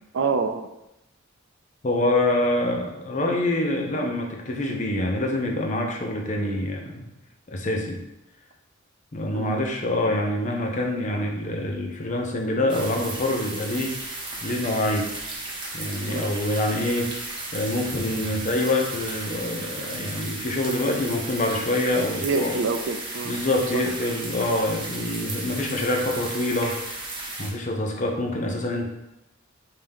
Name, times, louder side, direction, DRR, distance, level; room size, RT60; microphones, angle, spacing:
voice 1, 0.1-0.7 9.3-9.5 16.0-16.3 22.2-23.3, right 4 dB, 65° right, 7 dB, 0.4 m, -26 dB
voice 2, 1.8-7.1 7.5-8.0 9.1-13.9 14.4-15.2 15.7-22.6 23.2-28.9, left 1 dB, 40° left, 2 dB, 0.7 m, -26 dB
sound 1, 12.7-27.5, right 2 dB, 25° right, 0.9 m, -35 dB
5.3 x 2.8 x 3.5 m, 0.90 s
head